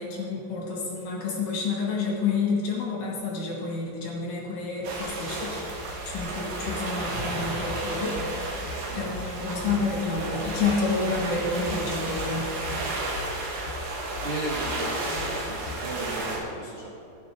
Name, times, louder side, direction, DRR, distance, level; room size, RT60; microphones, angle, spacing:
voice 1, 0.0-8.7 8.9-12.5, left 4 dB, 60° left, -3 dB, 3.1 m, -29 dB
sound 1, 4.8-16.4, right 2 dB, 85° right, 4.2 m, -32 dB
sound 2, 6.2-16.0, left 5 dB, 80° left, 2.8 m, -40 dB
voice 2, 14.2-17.0, right 2 dB, 70° right, -5 dB, 1.3 m, -36 dB
15.5 x 9.8 x 3.7 m, 2.8 s
omnidirectional pair, 5.0 m